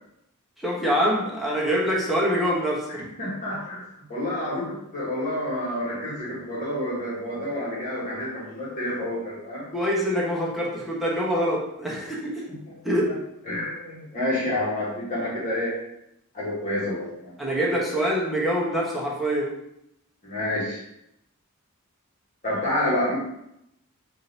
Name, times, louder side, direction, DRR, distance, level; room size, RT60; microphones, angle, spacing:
voice 1, 0.6-3.0 9.7-12.5 12.8-13.1 17.4-19.5, equal, ahead, -5 dB, 0.9 m, -25 dB
voice 2, 2.9-3.8 4.1-9.6 12.5-12.7 13.4-15.7 16.3-17.4 20.2-20.8 22.4-23.1, left 1 dB, 35° left, -8 dB, 1.4 m, -29 dB
3.8 x 2.6 x 4.0 m, 0.81 s
head